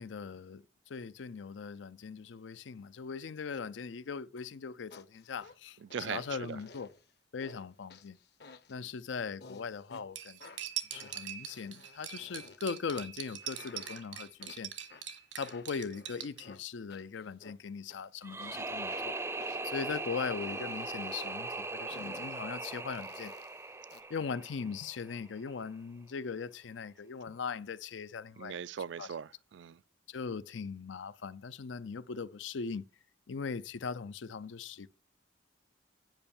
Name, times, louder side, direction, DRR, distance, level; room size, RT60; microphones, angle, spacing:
voice 1, 0.0-5.8 6.1-6.9 7.3-8.2 8.7-10.4 10.9-14.7 15.4-19.2 19.6-23.3 24.1-28.6 29.0-29.1 30.1-32.9 33.3-34.9, left 5 dB, 75° left, 0.5 m, -40 dB
sound 1, 4.9-5.6 5.9-7.0 7.4-7.7 7.9-8.9 9.4-10.0 10.4-12.6 12.9-14.6 14.9-17.6 17.9-18.0 18.4-20.0 20.4-21.4 21.9-22.4 22.9-24.0, left 3 dB, 60° left, 0.9 m, -54 dB
voice 2, 5.8-6.6 28.4-29.8, right 7 dB, 70° right, 0.4 m, -40 dB
Cutlery silverware, 10.1-16.4, right 11 dB, 85° right, 1.6 m, -43 dB
sound 2, 18.2-25.2, right 3 dB, 15° right, 0.5 m, -39 dB
9.1 x 5.4 x 7.0 m
head